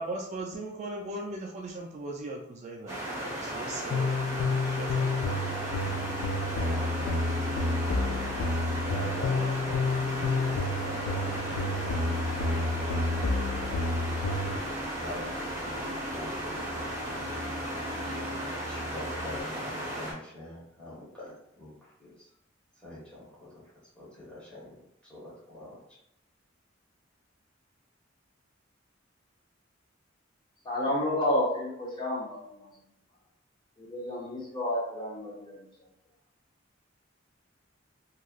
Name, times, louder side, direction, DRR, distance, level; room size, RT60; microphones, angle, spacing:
voice 1, 0.0-4.0 4.8-5.0, right 2 dB, 35° right, -1 dB, 0.3 m, -38 dB
sound 1, 2.9-20.1, right 1 dB, 15° right, 0.8 m, -35 dB
sound 2, 3.9-14.6, left 2 dB, 85° left, 0.3 m, -30 dB
sound 3, 5.7-19.4, left 2 dB, 70° left, 0.9 m, -42 dB
voice 2, 6.5-8.5 8.8-13.7 14.9-17.0 18.0-18.3 18.7-22.3 22.7-26.0, left 1 dB, 5° left, -8 dB, 1.3 m, -45 dB
voice 3, 30.6-32.7 33.8-35.7, left 1 dB, 25° left, -6 dB, 0.7 m, -31 dB
3.0 x 2.3 x 2.4 m, 0.76 s
head